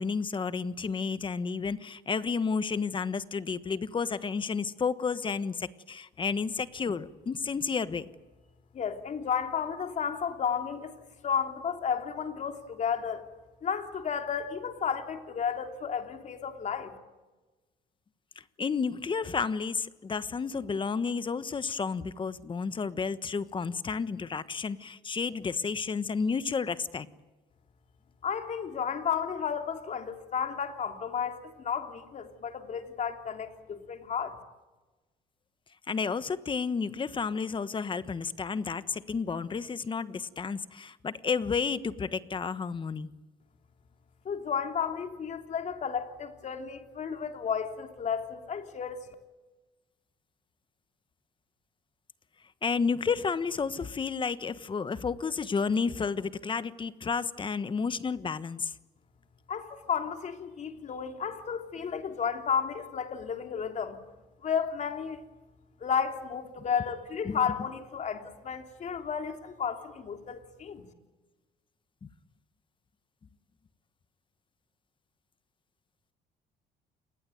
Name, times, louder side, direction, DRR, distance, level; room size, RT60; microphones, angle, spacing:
voice 1, 0.0-8.1 18.4-27.1 35.9-43.1 52.6-58.7 67.2-67.4 72.0-72.1, left 5 dB, 30° left, 14 dB, 1.3 m, -31 dB
voice 2, 8.7-10.9 11.2-13.2 13.6-16.9 28.2-34.4 44.2-49.0 59.5-64.0 64.4-65.2 65.8-70.8, left 7 dB, 45° left, 5 dB, 3.2 m, -32 dB
28.0 x 21.0 x 9.3 m, 1.2 s
cardioid pair, 110°, 17 cm